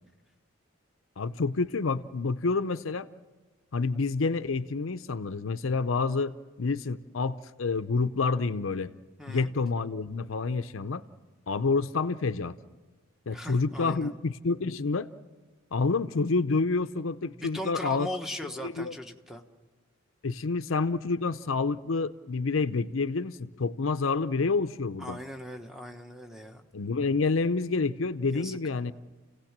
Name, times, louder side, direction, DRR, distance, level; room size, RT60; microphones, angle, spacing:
voice 1, 1.2-3.1 3.7-8.9 9.3-11.0 11.5-12.5 13.3-15.1 15.7-18.1 18.6-18.9 20.2-25.2 26.7-28.9, left 4 dB, 75° left, 12 dB, 0.6 m, -28 dB
voice 2, 9.2-9.5 13.3-14.2 17.3-19.4 25.0-26.7 28.2-28.6, left 1 dB, ahead, 5 dB, 1.2 m, -39 dB
29.5 x 17.0 x 7.4 m, 1.3 s
head